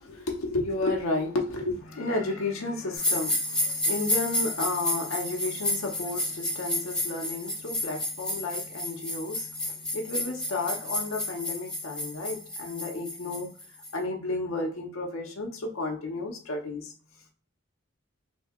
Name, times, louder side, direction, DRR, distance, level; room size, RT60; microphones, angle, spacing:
voice 1, 0.0-13.5 13.9-16.9, left 2 dB, 75° left, 2 dB, 0.7 m, -32 dB
sound 1, 2.9-13.9, left 1 dB, 5° left, 1.1 m, -31 dB
2.7 x 2.7 x 3.6 m, 0.40 s
head